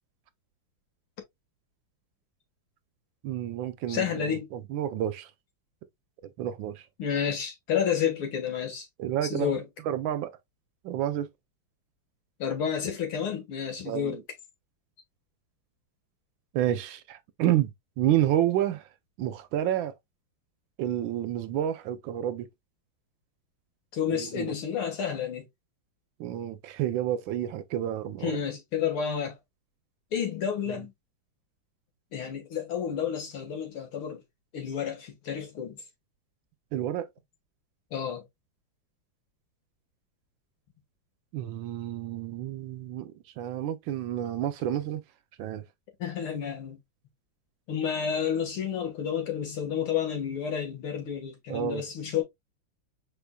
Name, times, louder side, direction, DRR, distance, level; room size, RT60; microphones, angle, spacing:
voice 1, 3.2-5.3 6.4-6.8 9.0-9.5 9.9-10.3 10.8-11.3 13.9-14.2 16.5-18.9 19.2-19.9 20.8-22.5 24.1-24.5 26.2-28.4 30.7-30.8 36.7-37.1 41.3-45.0 45.4-45.6 51.5-51.8, right 11 dB, 75° right, 1.2 m, -29 dB
voice 2, 3.9-4.5 7.0-8.9 9.3-9.7 12.4-14.2 23.9-25.5 28.2-29.4 30.1-30.9 32.1-34.2 34.5-35.8 37.9-38.2 46.0-46.8 47.7-52.2, left 8 dB, 85° left, 2.4 m, -30 dB
5.2 x 4.4 x 2.2 m
omnidirectional pair, 2.3 m